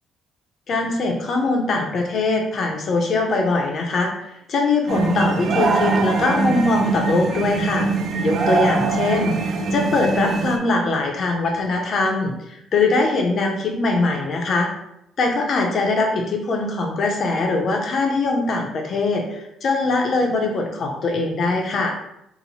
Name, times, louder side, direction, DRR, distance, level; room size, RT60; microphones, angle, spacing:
voice 1, 0.7-7.8 8.2-14.7 15.2-21.9, left 3 dB, 40° left, 2 dB, 0.6 m, -22 dB
sound 1, 4.9-10.6, right 4 dB, 40° right, 0.3 m, -22 dB
2.9 x 2.1 x 4.0 m, 0.79 s
cardioid pair, 160°, 0 cm